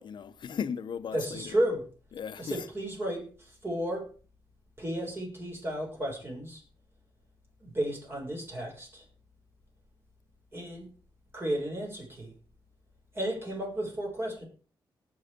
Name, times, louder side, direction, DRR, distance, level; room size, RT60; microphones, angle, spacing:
voice 1, 0.0-1.5 2.1-2.6, left 7 dB, 65° left, 0.9 m, -36 dB
voice 2, 1.1-1.8 2.4-4.1 4.8-6.6 7.6-9.0 10.5-10.9 11.3-12.3 13.1-14.5, right 1 dB, 30° right, 6.7 m, -33 dB
19.0 x 6.4 x 5.2 m
cardioid pair, 90°, 8 cm